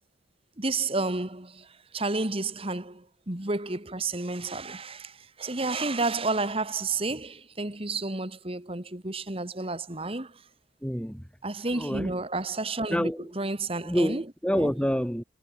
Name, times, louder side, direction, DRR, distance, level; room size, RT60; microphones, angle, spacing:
voice 1, 0.6-10.4 11.4-14.2 14.5-14.7, right 3 dB, 30° right, 2.0 m, -31 dB
voice 2, 10.8-11.3 11.7-12.1 12.9-13.3 13.8-15.2, equal, 5° left, 5.5 m, -27 dB
head